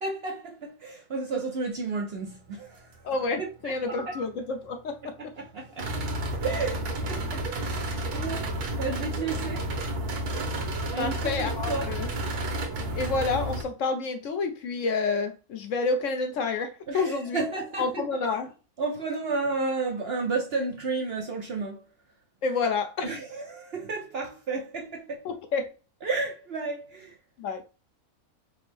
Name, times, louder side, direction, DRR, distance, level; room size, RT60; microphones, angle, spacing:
voice 1, 0.0-2.9 3.4-3.7 5.4-6.0 6.4-9.8 10.9-11.9 16.9-18.0 18.8-21.8 23.0-25.3 26.0-27.2, right 3 dB, 55° right, 0.7 m, -32 dB
voice 2, 3.0-5.3 11.0-12.1 12.9-17.4 17.8-18.5 22.4-23.1 25.2-25.7 27.4-27.6, left 4 dB, 70° left, 0.9 m, -29 dB
sound 1, 3.9-4.3 5.8-13.6, right 1 dB, 85° right, 1.4 m, -31 dB
5.1 x 2.0 x 3.3 m
omnidirectional pair, 1.6 m